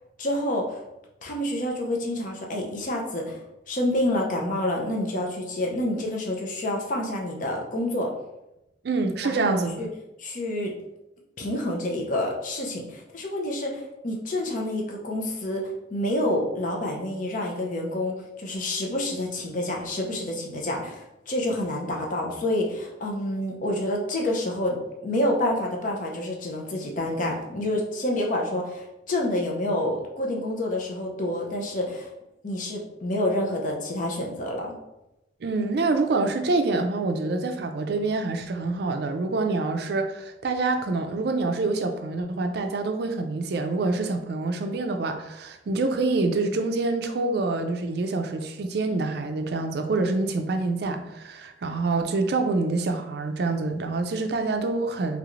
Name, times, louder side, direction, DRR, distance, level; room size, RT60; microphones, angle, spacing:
voice 1, 0.2-0.8 1.2-3.4 3.7-8.1 9.2-9.9 10.2-10.7 11.4-15.6 15.9-32.1 32.4-34.8, left 1 dB, 45° left, 0 dB, 0.6 m, -28 dB
voice 2, 8.8-9.9 35.4-55.2, right 3 dB, 60° right, 6 dB, 0.4 m, -26 dB
3.3 x 3.1 x 2.5 m, 0.91 s
head